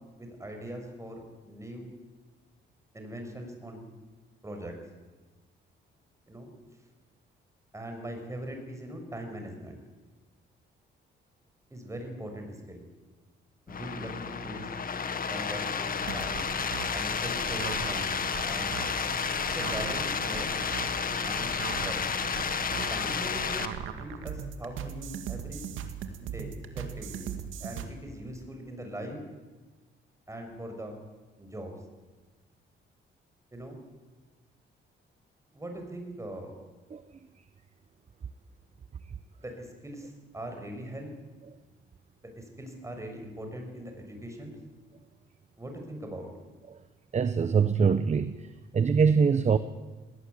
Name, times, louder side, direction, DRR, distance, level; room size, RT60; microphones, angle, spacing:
voice 1, 0.1-1.9 2.9-3.9 4.4-4.7 6.3-6.5 7.7-9.8 11.7-12.8 13.7-14.7 15.3-16.5 16.9-18.1 18.5-18.9 19.5-20.6 21.2-22.0 22.7-25.6 26.2-27.3 27.6-29.2 30.3-31.0 31.4-31.7 33.5-33.8 35.5-36.5 39.4-41.1 42.3-44.6 45.6-46.3, right 1 dB, 15° right, 4 dB, 6.5 m, -41 dB
sound 1, 13.7-23.7, left 6 dB, 45° left, 1.8 m, -31 dB
sound 2, 16.0-27.9, right 8 dB, 85° right, 2.1 m, -39 dB
voice 2, 47.1-48.4 48.7-49.6, right 6 dB, 35° right, 13 dB, 0.9 m, -23 dB
19.0 x 18.0 x 9.6 m, 1.2 s
cardioid pair, 90°, 20 cm